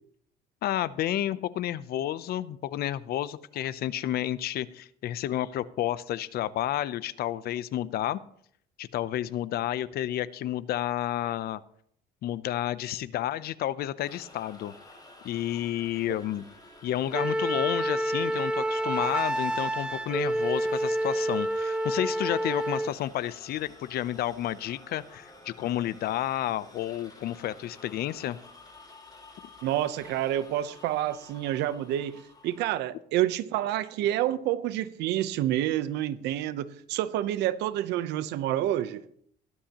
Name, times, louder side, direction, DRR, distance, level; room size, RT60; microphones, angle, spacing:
voice 1, 0.6-8.2 8.8-11.6 12.2-14.7 15.2-16.4 16.8-28.4, left 12 dB, 65° left, 0.7 m, -31 dB
sound 1, 14.0-32.6, left 2 dB, 25° left, 5.6 m, -51 dB
Wind instrument woodwind instrument, 17.1-22.9, right 1 dB, 5° right, 0.5 m, -28 dB
voice 2, 29.6-39.0, right 12 dB, 85° right, 0.8 m, -28 dB
18.0 x 11.5 x 3.0 m
cardioid pair, 110°, 17 cm